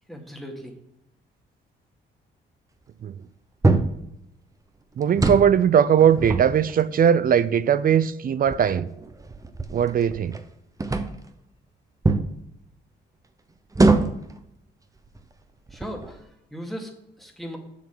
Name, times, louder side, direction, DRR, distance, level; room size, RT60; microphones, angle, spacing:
voice 1, 0.1-0.7 15.7-17.6, equal, ahead, 1.9 m, -38 dB
sound 1, 3.6-4.0 5.0-5.6 6.0-7.1 7.8-7.9 8.4-10.4 10.8-11.3 12.0-12.3 13.7-14.3 15.0-15.2 15.7-16.2, right 3 dB, 15° right, 0.7 m, -23 dB
voice 2, 5.0-8.9 9.7-10.4, right 8 dB, 45° right, 0.5 m, -19 dB
7.2 x 6.4 x 6.1 m
cardioid pair, 90°, 20 cm